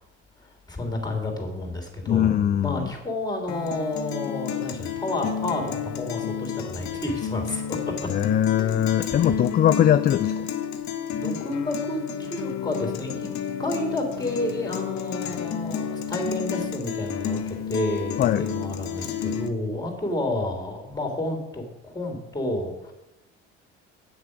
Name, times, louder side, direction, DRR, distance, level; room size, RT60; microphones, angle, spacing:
voice 1, 0.7-7.8 9.1-9.3 11.1-13.3 13.6-22.9, left 1 dB, 10° left, 3 dB, 3.3 m, -30 dB
voice 2, 2.1-2.9 8.1-10.5 18.2-18.5, left 10 dB, 30° left, 13 dB, 0.3 m, -21 dB
Guitar, 3.5-19.5, left 8 dB, 50° left, 1.0 m, -30 dB
8.8 x 6.7 x 6.2 m, 0.96 s
hypercardioid pair, 55°, 35 cm